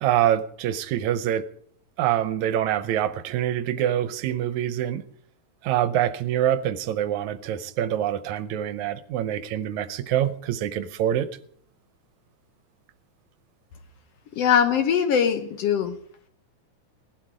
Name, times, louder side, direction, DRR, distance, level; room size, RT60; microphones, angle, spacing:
voice 1, 0.0-1.4 2.0-5.0 5.6-11.3, right 11 dB, 80° right, 13 dB, 2.0 m, -25 dB
voice 2, 14.4-16.0, left 8 dB, 65° left, 8 dB, 1.7 m, -21 dB
17.5 x 12.0 x 4.8 m, 0.62 s
omnidirectional pair, 3.4 m